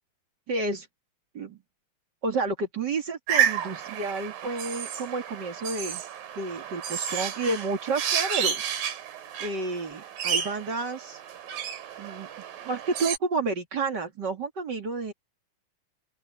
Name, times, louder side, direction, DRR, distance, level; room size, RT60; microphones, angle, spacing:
voice 1, 0.5-0.9 1.3-1.6 2.2-6.0 6.4-8.7 9.4-11.2 12.0-12.3 12.6-15.1, right 3 dB, 35° right, 2.5 m, -30 dB
sound 1, 3.3-13.2, right 8 dB, 85° right, 3.8 m, -31 dB
open air
omnidirectional pair, 3.8 m